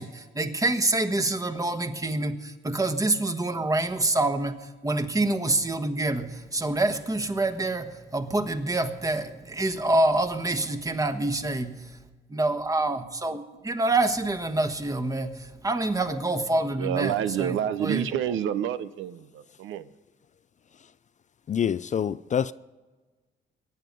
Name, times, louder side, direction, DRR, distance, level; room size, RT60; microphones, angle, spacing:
voice 1, 0.0-12.0 12.3-18.1, right 2 dB, 15° right, 1.3 m, -27 dB
voice 2, 16.8-19.9, right 10 dB, 80° right, 0.7 m, -28 dB
voice 3, 21.5-22.5, left 8 dB, 40° left, 0.4 m, -26 dB
22.5 x 9.3 x 5.3 m
cardioid pair, 90°, 20 cm